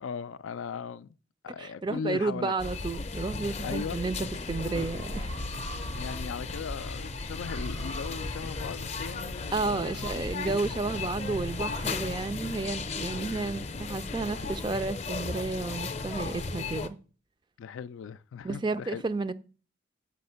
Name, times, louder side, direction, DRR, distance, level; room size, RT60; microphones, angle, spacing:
voice 1, 0.0-1.1 1.4-2.5 3.6-4.0 6.0-10.1 17.6-19.0, left 6 dB, 85° left, 0.4 m, -38 dB
voice 2, 1.6-5.3 9.5-17.0 18.4-19.3, right 3 dB, 25° right, 0.3 m, -32 dB
sound 1, 2.6-16.9, left 4 dB, 35° left, 0.6 m, -36 dB
sound 2, 4.6-9.8, equal, 85° right, 1.5 m, -40 dB
6.3 x 5.2 x 6.7 m
head